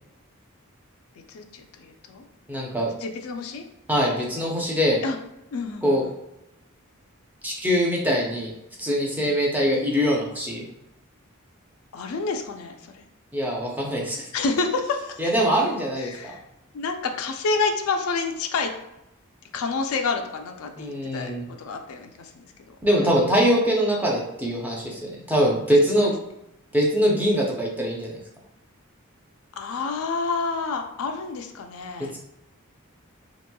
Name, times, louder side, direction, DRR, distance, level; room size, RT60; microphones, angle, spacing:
voice 1, 1.3-2.2 3.0-3.7 5.0-5.2 5.5-6.1 9.2-9.4 11.9-13.1 14.3-15.2 16.0-16.4 16.7-18.7 19.5-22.7 23.0-23.2 29.6-32.2, left 4 dB, 90° left, 4 dB, 0.4 m, -29 dB
voice 2, 2.5-2.9 3.9-5.0 5.8-6.0 7.4-8.5 8.8-10.6 13.3-14.3 15.2-16.4 20.8-21.4 22.8-26.1 26.7-28.2, equal, 10° right, -3 dB, 0.5 m, -23 dB
2.9 x 2.9 x 2.2 m, 0.87 s
head